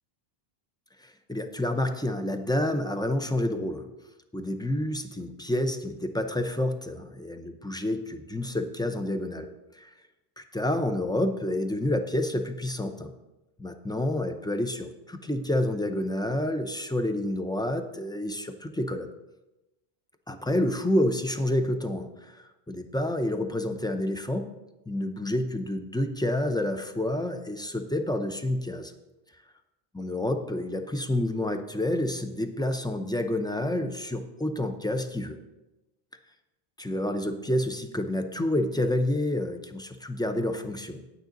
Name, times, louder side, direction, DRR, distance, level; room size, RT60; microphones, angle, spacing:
voice 1, 1.0-3.9 4.3-9.9 10.4-13.1 13.6-19.1 20.3-24.5 24.9-28.9 30.0-35.4 36.8-41.1, left 1 dB, 5° left, 6 dB, 0.4 m, -29 dB
9.6 x 9.1 x 3.9 m, 1.0 s
omnidirectional pair, 1.0 m